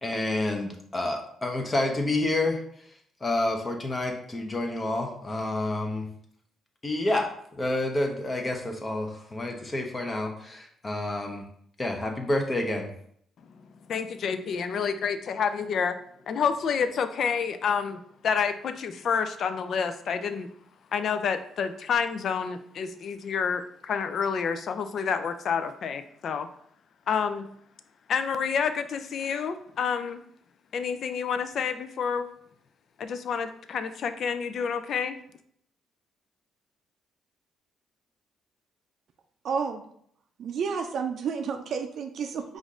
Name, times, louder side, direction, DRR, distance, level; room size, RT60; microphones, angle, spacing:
voice 1, 0.0-2.6 3.2-6.0 6.8-7.3 7.6-11.4 11.8-12.9, left 2 dB, 25° left, 2 dB, 0.9 m, -29 dB
voice 2, 13.9-16.0 16.3-20.5 20.9-26.5 27.1-27.5 28.1-30.2 30.7-32.3 33.0-35.2, left 6 dB, 60° left, 10 dB, 0.4 m, -29 dB
voice 3, 39.4-39.8 40.4-42.6, right 6 dB, 65° right, 5 dB, 0.4 m, -31 dB
5.1 x 2.5 x 3.7 m, 0.66 s
cardioid pair, 90°, 0 cm